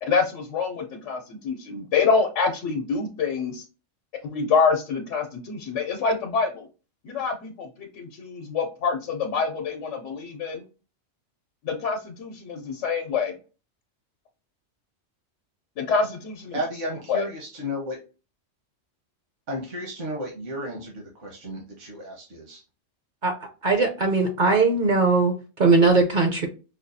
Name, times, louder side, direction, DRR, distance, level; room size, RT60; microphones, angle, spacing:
voice 1, 0.0-3.7 4.2-6.7 7.0-10.6 11.6-13.4 15.8-16.6 17.1-17.3, left 5 dB, 75° left, 3 dB, 0.9 m, -26 dB
voice 2, 16.5-18.0 19.5-22.6, equal, 70° right, -1 dB, 1.5 m, -33 dB
voice 3, 23.6-25.3 25.6-26.5, right 3 dB, 50° right, 4 dB, 0.7 m, -19 dB
5.1 x 2.3 x 2.6 m, 0.33 s
omnidirectional pair, 1.3 m